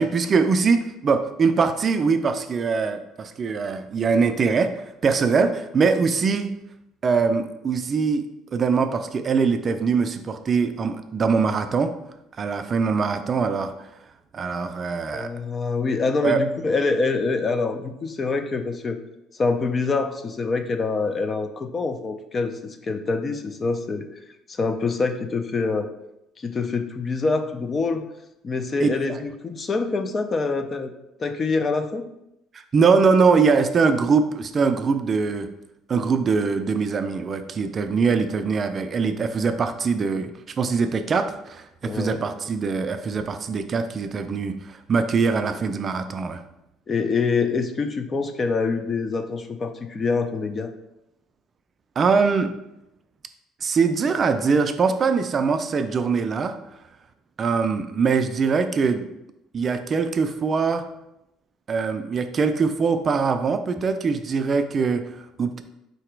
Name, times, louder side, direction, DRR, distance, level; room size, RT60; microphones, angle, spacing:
voice 1, 0.0-6.5 7.0-8.3 8.5-11.9 12.4-13.9 14.3-15.3 16.2-16.4 28.8-29.2 32.5-35.5 35.9-40.3 40.6-46.4 52.0-52.5 53.6-56.6 57.4-59.1 59.5-60.8 61.7-65.6, right 5 dB, 35° right, 8 dB, 0.4 m, -22 dB
voice 2, 15.1-19.0 19.4-24.1 24.5-25.9 26.4-28.1 28.4-30.9 31.2-32.1 41.8-42.2 46.9-50.7, left 4 dB, 30° left, 8 dB, 0.4 m, -25 dB
3.9 x 2.9 x 4.6 m, 0.86 s
cardioid pair, 110°, 0 cm